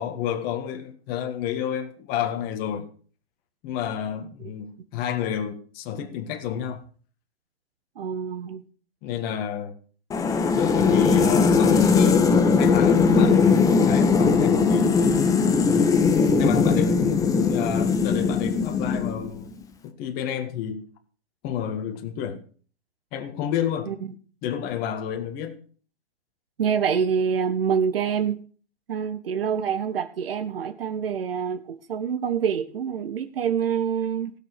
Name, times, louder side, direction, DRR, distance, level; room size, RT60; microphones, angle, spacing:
voice 1, 0.0-2.9 3.6-6.9 9.0-9.7 10.5-15.0 15.5-19.5 19.8-20.9 21.4-22.4 23.1-23.9 24.4-25.6, left 9 dB, 30° left, 1.8 m, -30 dB
voice 2, 7.9-8.6 23.8-24.1 26.6-28.4 28.9-34.3, right 7 dB, 65° right, 1.6 m, -26 dB
sound 1, 10.1-19.4, left 5 dB, 10° left, 1.0 m, -19 dB
16.0 x 6.9 x 6.7 m
hypercardioid pair, 125°, 31 cm